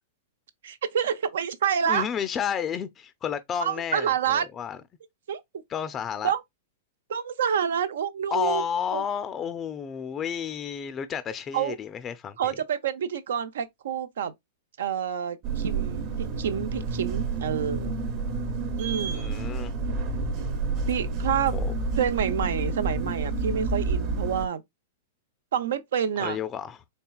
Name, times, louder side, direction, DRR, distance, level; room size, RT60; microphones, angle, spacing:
voice 1, 0.6-2.0 3.6-4.5 5.3-5.4 6.2-6.4 7.1-8.6 8.9-9.0 11.5-11.8 12.4-14.3 14.8-17.9 18.8-19.3 20.9-21.6 22.0-24.6 25.5-26.4, right 8 dB, 75° right, 0.6 m, -28 dB
voice 2, 1.9-4.8 5.7-6.3 8.3-12.4 19.1-19.7 21.5-21.7 26.2-26.8, left 8 dB, 25° left, 0.4 m, -31 dB
sound 1, 15.4-24.5, right 3 dB, 45° right, 0.9 m, -29 dB
4.4 x 3.2 x 2.3 m
hypercardioid pair, 135°, 0 cm